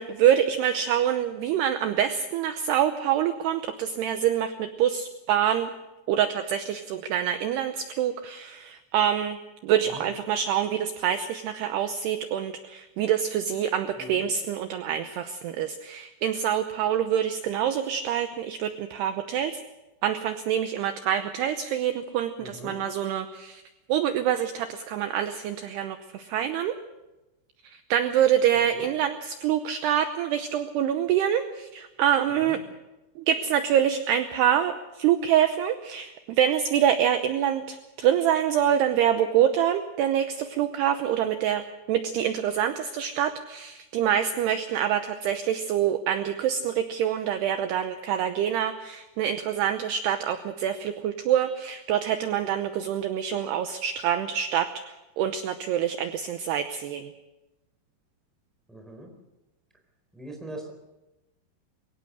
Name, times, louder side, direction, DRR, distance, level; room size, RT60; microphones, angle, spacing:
voice 1, 0.0-5.7 6.1-9.4 9.6-19.6 20.0-23.6 23.9-26.7 27.6-32.6 33.2-41.6 41.9-57.1, right 10 dB, 80° right, 8 dB, 2.5 m, -26 dB
voice 2, 22.4-22.8 28.5-28.9 32.3-32.6 58.7-59.1 60.1-60.7, right 1 dB, ahead, 3 dB, 3.3 m, -41 dB
23.0 x 17.5 x 6.5 m, 1.0 s
omnidirectional pair, 5.6 m